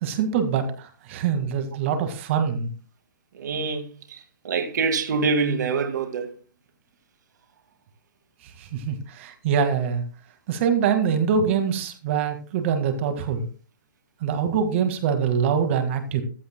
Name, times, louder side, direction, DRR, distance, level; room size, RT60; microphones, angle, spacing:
voice 1, 0.0-2.7 8.6-10.0 10.5-13.5 14.2-16.2, right 7 dB, 40° right, 1.9 m, -24 dB
voice 2, 3.3-6.3, right 4 dB, 65° right, 2.0 m, -25 dB
15.0 x 13.0 x 2.2 m
hypercardioid pair, 155°, 11 cm